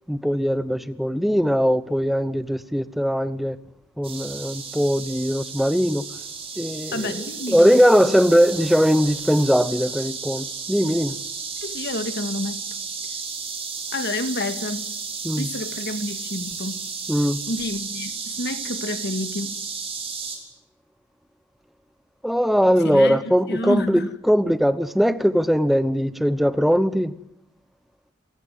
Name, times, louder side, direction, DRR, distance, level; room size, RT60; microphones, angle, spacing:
voice 1, 0.1-3.6 4.0-6.0 6.6-11.2 15.2-15.5 17.1-17.4 22.2-27.1, equal, ahead, 1.0 m, -20 dB
sound 1, 4.0-20.4, right 5 dB, 30° right, 4.8 m, -33 dB
voice 2, 6.9-7.8 11.6-12.6 13.9-14.9 15.4-16.8 17.5-19.5 22.8-24.1, left 2 dB, 60° left, 2.1 m, -29 dB
27.5 x 16.0 x 9.4 m
head